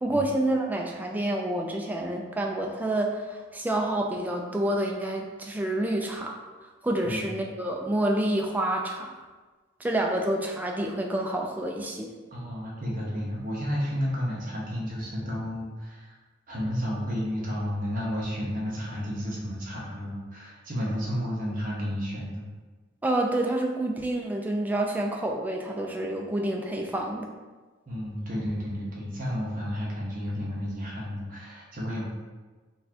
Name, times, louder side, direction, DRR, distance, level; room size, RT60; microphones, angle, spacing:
voice 1, 0.0-6.4 6.8-9.3 9.8-12.1 23.0-27.3, right 1 dB, 10° right, 1 dB, 0.3 m, -28 dB
voice 2, 12.3-16.2 16.5-22.4 27.9-32.1, equal, 45° right, -4 dB, 0.9 m, -32 dB
4.0 x 2.4 x 2.8 m, 1.3 s
head